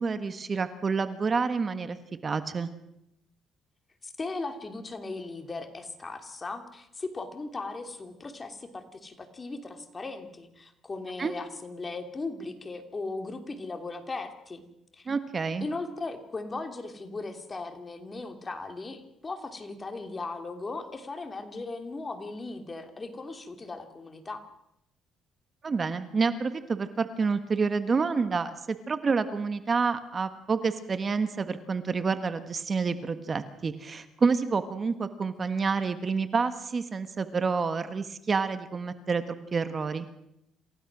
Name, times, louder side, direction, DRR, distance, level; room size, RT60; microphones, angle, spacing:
voice 1, 0.0-2.0 2.2-2.7 11.2-11.3 15.1-15.7 25.6-39.2 39.5-40.1, right 4 dB, 35° right, 10 dB, 1.4 m, -28 dB
voice 2, 4.0-14.7 14.9-15.1 15.6-24.4, left 3 dB, 25° left, 6 dB, 2.9 m, -38 dB
27.5 x 16.0 x 6.2 m, 0.81 s
cardioid pair, 95°, 0 cm